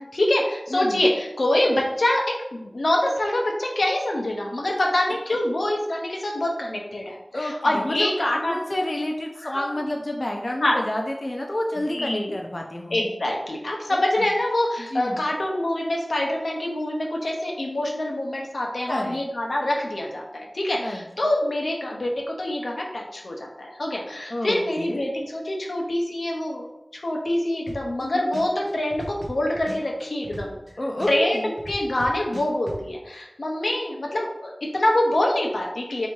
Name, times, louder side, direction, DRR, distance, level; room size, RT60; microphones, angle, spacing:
voice 1, 0.0-8.6 9.5-9.8 10.6-10.8 11.9-12.3 12.9-26.7 26.9-30.6 31.1-36.1, left 1 dB, 85° left, -1 dB, 0.7 m, -25 dB
voice 2, 0.7-1.0 7.3-13.1 13.9-14.0 14.8-15.3 18.9-19.2 20.8-21.0 24.3-25.0 28.0-28.2 30.8-31.5, left 1 dB, 45° left, 1 dB, 0.5 m, -29 dB
sound 1, 27.7-28.0 28.3-30.7 31.0-32.8, right 1 dB, 75° right, 0.9 m, -37 dB
3.4 x 2.8 x 4.5 m, 0.95 s
wide cardioid pair, 50°, 0 cm